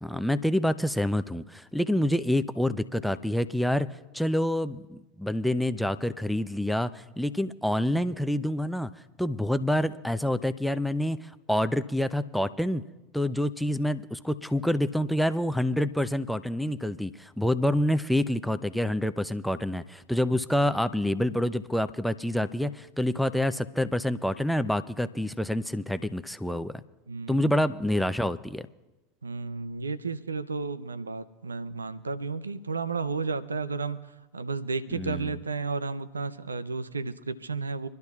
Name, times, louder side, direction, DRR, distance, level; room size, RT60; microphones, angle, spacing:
voice 1, 0.0-3.9 4.1-8.9 9.2-12.8 13.1-26.7 27.3-28.7 34.9-35.3, left 1 dB, ahead, 12 dB, 0.6 m, -27 dB
voice 2, 27.1-27.5 29.2-34.0 34.3-37.9, right 4 dB, 90° right, 14 dB, 0.6 m, -32 dB
26.0 x 12.0 x 2.4 m, 1.1 s
hypercardioid pair, 85°, 0 cm